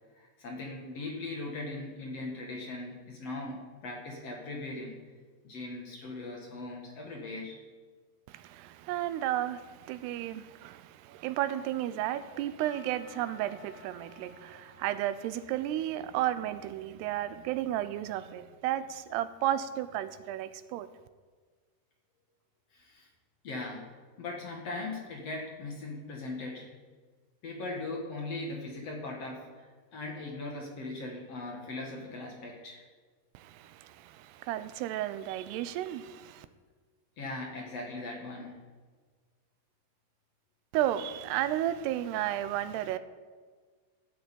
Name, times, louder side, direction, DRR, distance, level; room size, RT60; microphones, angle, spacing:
voice 1, 0.1-5.0 5.4-7.6 22.7-23.1 23.4-23.9 24.2-26.7 27.4-29.7 29.9-32.8 37.2-38.6, left 2 dB, 50° left, 2.4 m, -39 dB
voice 2, 8.3-20.9 33.3-36.5 40.7-43.0, right 12 dB, 90° right, 2.8 m, -33 dB
Percussion / Church bell, 12.6-16.5, left 6 dB, 15° right, 1.8 m, -57 dB
14.0 x 7.8 x 8.7 m
omnidirectional pair, 4.6 m